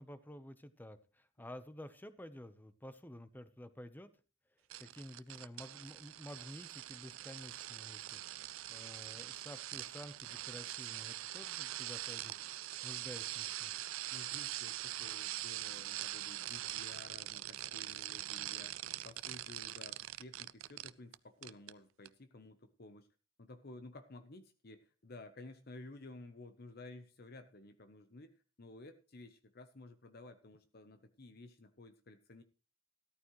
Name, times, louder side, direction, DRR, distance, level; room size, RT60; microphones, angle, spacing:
voice 1, 0.0-4.1 4.8-12.3 12.8-13.7, left 1 dB, 10° left, 12 dB, 0.8 m, -51 dB
sound 1, 4.7-21.2 21.4-21.7 22.1-22.2, right 14 dB, 85° right, 0.5 m, -43 dB
voice 2, 14.1-23.1 23.4-32.4, left 2 dB, 50° left, 9 dB, 0.8 m, -54 dB
14.0 x 13.5 x 3.1 m, 0.34 s
head